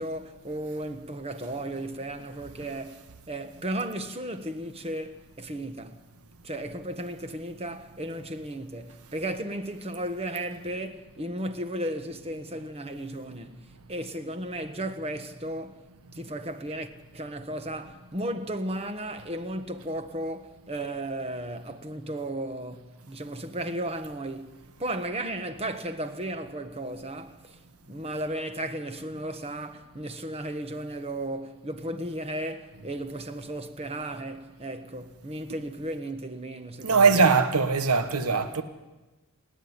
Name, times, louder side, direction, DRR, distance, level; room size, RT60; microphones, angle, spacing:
voice 1, 0.0-6.0 6.4-15.8 16.1-27.6 27.9-37.2, right 1 dB, 25° right, 1.3 m, -35 dB
voice 2, 36.8-38.6, right 4 dB, 90° right, 1.4 m, -21 dB
29.0 x 10.5 x 9.6 m
head